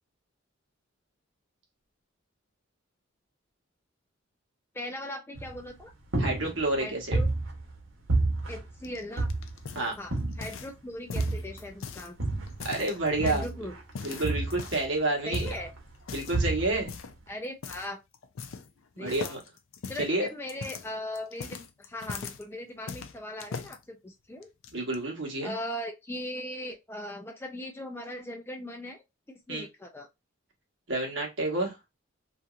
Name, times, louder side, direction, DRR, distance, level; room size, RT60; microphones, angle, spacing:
voice 1, 4.7-5.9 6.8-7.3 8.5-9.3 10.0-12.2 13.2-13.8 15.3-15.7 17.3-18.0 19.0-19.4 19.9-24.5 25.4-30.1, left 1 dB, 10° left, 0.4 m, -39 dB
sound 1, 5.4-5.8 6.1-7.8 8.1-9.7 10.1-10.7 11.2-12.7 13.2-15.0 15.3-15.8 16.3-16.9, right 2 dB, 85° right, 1.1 m, -30 dB
voice 2, 6.2-7.2 9.7-9.9 12.6-13.4 14.0-15.5 16.1-16.9 19.0-19.4 20.0-20.3 24.7-25.5 29.5-29.6 30.9-31.8, right 2 dB, 65° right, 1.2 m, -29 dB
sound 2, 8.8-10.8 11.1-12.1 12.5-13.5 13.9-14.9 15.3-15.6 16.0-16.4 16.9-17.2 17.6-17.9 18.1-18.8 19.1-22.4 22.9-23.8 24.4-25.0, left 5 dB, 85° left, 0.5 m, -40 dB
2.9 x 2.7 x 2.4 m
head